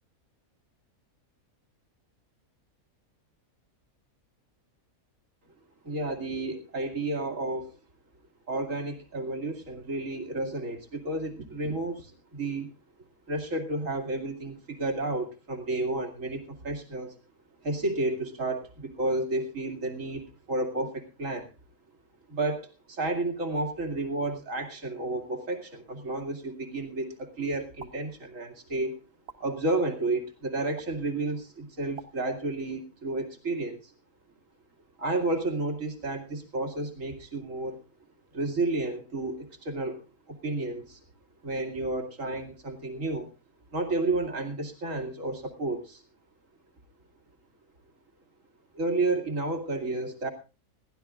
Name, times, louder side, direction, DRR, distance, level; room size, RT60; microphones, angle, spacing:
voice 1, 5.8-7.8 8.5-12.7 13.3-17.2 17.6-21.5 22.3-28.9 29.4-33.9 35.0-37.8 38.3-40.0 40.3-41.0 41.4-43.3 43.7-46.0 48.7-50.3, right 2 dB, 60° right, 6 dB, 2.8 m, -31 dB
sound 1, 27.8-27.9 29.3-29.4 30.8-30.9 32.0-32.1, right 5 dB, 45° right, 1.2 m, -43 dB
21.0 x 15.0 x 2.4 m, 0.30 s
omnidirectional pair, 1.5 m